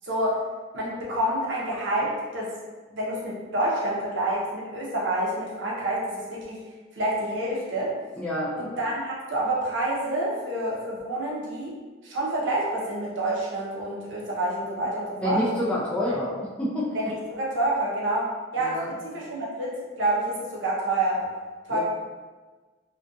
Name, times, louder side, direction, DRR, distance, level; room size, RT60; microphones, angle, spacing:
voice 1, 0.0-0.4 0.7-2.5 2.9-6.6 6.9-7.9 8.6-15.4 16.1-16.2 16.9-18.8 19.0-21.3 21.6-21.8, right 1 dB, 65° right, -5 dB, 0.6 m, -28 dB
voice 2, 8.2-8.5 15.2-17.0 18.6-18.9 21.7-21.8, left 1 dB, 5° left, -7 dB, 0.3 m, -27 dB
2.4 x 2.2 x 2.5 m, 1.3 s
head